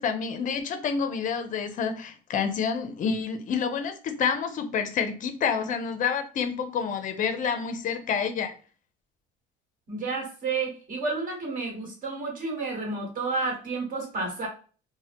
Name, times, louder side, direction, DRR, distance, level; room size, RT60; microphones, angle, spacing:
voice 1, 0.0-8.5, left 6 dB, 40° left, 8 dB, 0.5 m, -28 dB
voice 2, 9.9-14.5, right 3 dB, 40° right, 1 dB, 1.3 m, -31 dB
2.6 x 2.1 x 3.3 m, 0.38 s
cardioid pair, 130°, 21 cm